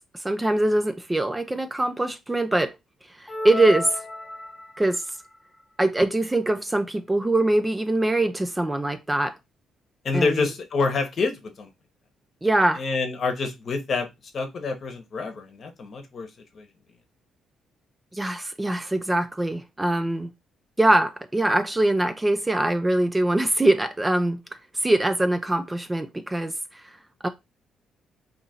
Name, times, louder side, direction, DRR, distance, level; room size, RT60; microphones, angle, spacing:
voice 1, 0.2-2.7 3.2-4.0 4.8-5.0 5.8-9.3 10.1-10.5 12.4-12.8 18.1-20.3 20.8-24.4 24.8-26.5 27.2-27.3, right 1 dB, 15° right, 0.4 m, -23 dB
sound 1, 3.3-4.9, left 2 dB, 10° left, 0.7 m, -32 dB
voice 2, 10.0-11.7 12.7-14.1 14.3-16.3 16.5-16.7, left 4 dB, 50° left, 0.9 m, -27 dB
2.8 x 2.5 x 4.1 m
cardioid pair, 90°, 0 cm